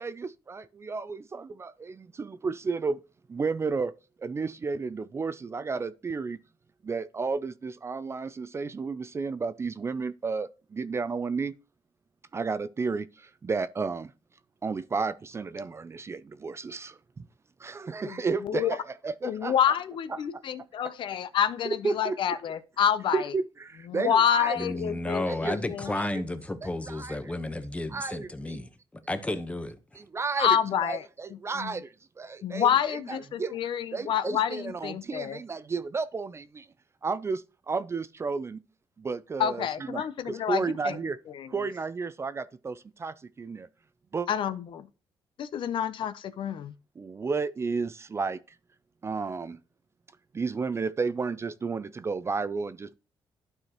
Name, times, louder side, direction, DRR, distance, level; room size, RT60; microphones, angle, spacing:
voice 1, 0.0-3.0 3.3-3.9 4.2-6.4 6.8-11.5 12.3-14.1 14.6-17.2 17.6-19.5 20.3-20.4 21.7-22.2 23.1-24.6 25.3-25.6 25.9-26.2 26.6-27.2 27.9-28.6 30.0-36.7 37.0-38.6 39.0-41.2 41.5-43.7 44.1-44.3 47.0-48.6 49.0-49.6 50.3-52.9, right 4 dB, 30° right, 0.4 m, -32 dB
voice 2, 18.1-18.8 19.2-23.3 23.9-26.0 30.4-31.1 31.6-31.8 32.4-35.4 39.4-41.0 41.3-41.5 44.3-44.9 45.4-46.7, left 9 dB, 65° left, 0.5 m, -28 dB
voice 3, 24.6-29.8, left 2 dB, 15° left, 0.9 m, -32 dB
12.0 x 4.8 x 2.9 m
cardioid pair, 95°, 9 cm